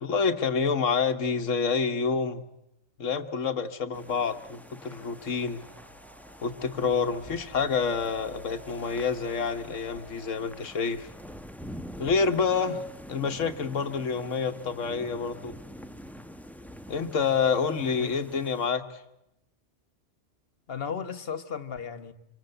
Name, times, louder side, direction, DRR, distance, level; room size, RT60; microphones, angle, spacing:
voice 1, 0.0-2.4 3.0-5.6 6.4-11.1 12.0-12.8 13.1-15.5 16.9-19.0, left 5 dB, 75° left, 1.6 m, -28 dB
sound 1, 3.7-10.3, right 1 dB, 45° right, 7.5 m, -53 dB
sound 2, 3.9-18.7, equal, ahead, 0.8 m, -46 dB
voice 2, 17.8-18.2 20.7-22.1, left 7 dB, 50° left, 1.4 m, -35 dB
25.0 x 25.0 x 7.9 m
omnidirectional pair, 1.3 m